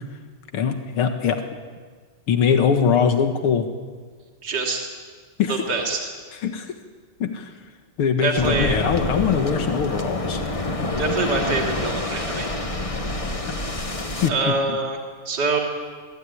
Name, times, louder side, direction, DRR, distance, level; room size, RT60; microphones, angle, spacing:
voice 1, 0.5-1.4 2.3-3.7 5.4-5.6 6.4-6.7 7.2-7.5 8.0-10.4 14.2-14.8, left 7 dB, 90° left, 6 dB, 2.4 m, -22 dB
voice 2, 4.4-4.9 5.5-6.1 8.2-8.8 11.0-12.5 14.3-15.0 15.2-15.6, right 3 dB, 50° right, 1 dB, 3.4 m, -25 dB
Waves surf, 8.4-14.3, left 2 dB, 20° left, 1.3 m, -27 dB
23.5 x 16.0 x 10.0 m, 1.5 s
omnidirectional pair, 2.3 m